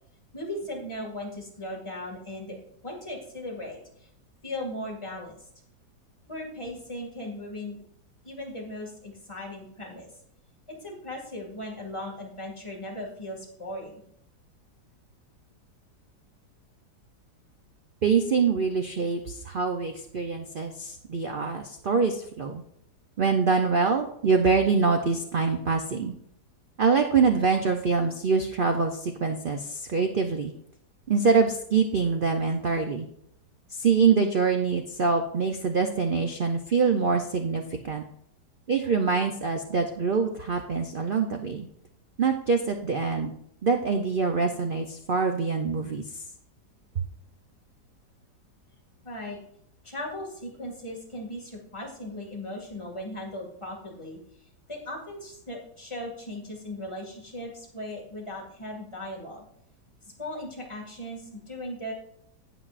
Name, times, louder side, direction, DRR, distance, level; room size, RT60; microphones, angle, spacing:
voice 1, 0.3-2.6 2.8-4.1 4.4-5.5 6.3-7.8 8.2-10.1 10.7-14.0 49.0-49.4 49.8-59.5 60.0-61.9, left 1 dB, 15° left, -2 dB, 2.1 m, -38 dB
voice 2, 18.0-22.6 23.2-26.1 26.8-30.5 31.1-33.1 33.7-38.0 38.7-41.7 42.2-43.3 43.6-46.2, right 5 dB, 75° right, 4 dB, 0.4 m, -25 dB
17.5 x 6.0 x 2.5 m, 0.72 s
omnidirectional pair, 1.9 m